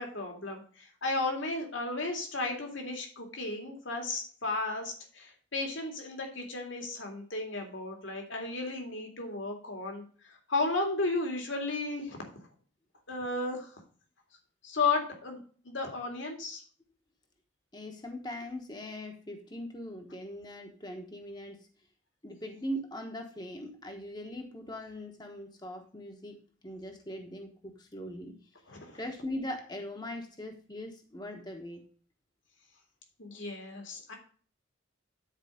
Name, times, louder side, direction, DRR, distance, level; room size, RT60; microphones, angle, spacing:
voice 1, 0.0-12.2 13.1-13.7 14.6-15.4 15.6-16.6 28.7-29.0 33.2-34.1, left 3 dB, 70° left, 3 dB, 2.3 m, -34 dB
voice 2, 17.7-21.7 22.2-28.3 28.9-31.8, equal, 20° left, 3 dB, 1.1 m, -40 dB
10.0 x 4.7 x 4.9 m, 0.42 s
head